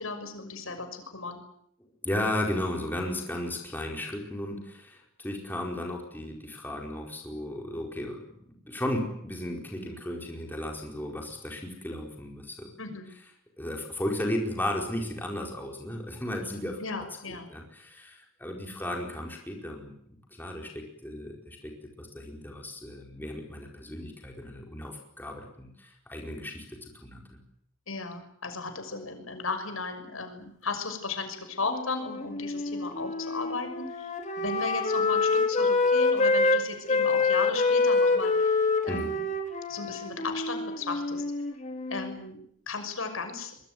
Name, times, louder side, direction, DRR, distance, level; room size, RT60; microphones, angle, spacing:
voice 1, 0.0-1.4 12.8-13.1 16.8-17.5 27.9-34.1 34.4-39.3 39.7-41.2 41.9-42.4 42.7-43.5, left 4 dB, 90° left, 7 dB, 6.3 m, -35 dB
voice 2, 2.0-8.2 8.5-12.7 13.6-16.8 17.3-27.4 38.9-39.1, left 1 dB, 10° left, 1 dB, 4.8 m, -35 dB
Wind instrument woodwind instrument, 31.7-36.6 36.9-42.2, left 3 dB, 35° left, 4.1 m, -26 dB
24.0 x 22.0 x 9.5 m, 0.70 s
head